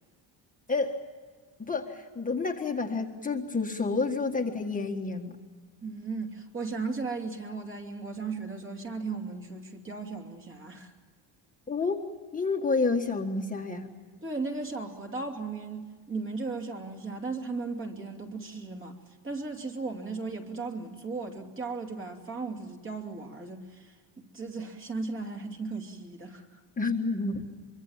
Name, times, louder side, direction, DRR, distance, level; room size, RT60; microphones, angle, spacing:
voice 1, 0.7-1.0 1.6-5.4 11.7-12.0 12.3-13.9 26.8-27.4, left 4 dB, 15° left, 1.6 m, -29 dB
voice 2, 5.8-10.9 14.2-19.0 19.2-24.0 24.3-26.6, right 3 dB, 25° right, 3.0 m, -36 dB
25.0 x 24.0 x 7.4 m
cardioid pair, 160°, 46 cm